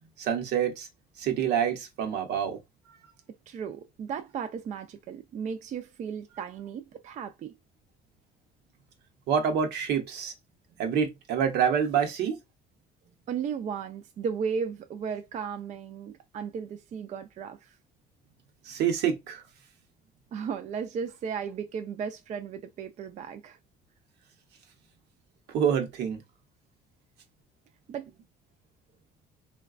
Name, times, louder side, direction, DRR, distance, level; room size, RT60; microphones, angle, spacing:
voice 1, 0.2-0.9 1.2-2.6 9.3-10.3 10.8-12.4 18.7-19.4 25.5-26.2, right 8 dB, 80° right, 0.8 m, -27 dB
voice 2, 3.5-7.5 13.3-17.8 20.3-23.6 27.9-28.1, right 6 dB, 45° right, 0.4 m, -35 dB
3.8 x 2.2 x 2.4 m
cardioid pair, 110°, 17 cm